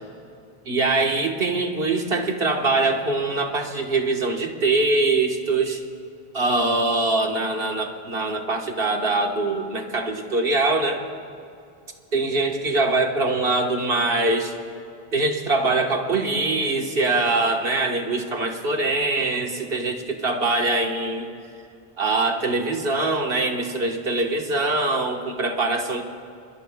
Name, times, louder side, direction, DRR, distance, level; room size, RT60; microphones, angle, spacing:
voice 1, 0.6-5.8 6.3-11.0 12.1-14.5 15.1-21.3 22.0-26.0, right 2 dB, 65° right, 2 dB, 1.7 m, -23 dB
28.0 x 21.0 x 2.3 m, 2.5 s
omnidirectional pair, 1.0 m